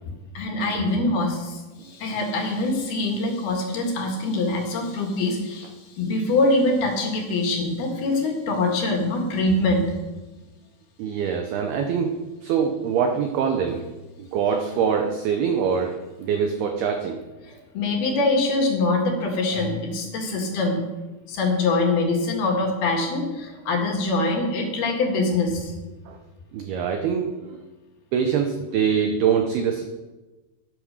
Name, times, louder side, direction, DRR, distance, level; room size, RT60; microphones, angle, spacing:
voice 1, 0.3-9.8 17.5-20.8 21.3-25.8, left 2 dB, 60° left, 2 dB, 3.3 m, -24 dB
voice 2, 11.0-13.9 14.2-17.3 26.1-26.2 26.5-27.6 28.1-29.8, right 7 dB, 85° right, 5 dB, 2.2 m, -24 dB
12.0 x 9.5 x 6.4 m, 1.2 s
omnidirectional pair, 5.6 m